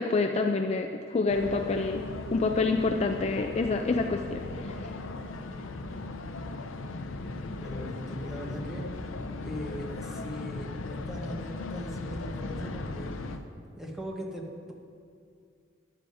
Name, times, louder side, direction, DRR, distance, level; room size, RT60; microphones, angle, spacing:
voice 1, 0.0-5.0, left 3 dB, 35° left, 4 dB, 0.3 m, -28 dB
sound 1, 1.3-13.4, left 2 dB, 85° left, 0.6 m, -37 dB
voice 2, 7.5-8.8 9.4-13.4 13.8-14.7, equal, ahead, -1 dB, 1.0 m, -40 dB
12.5 x 10.5 x 2.6 m, 2.4 s
head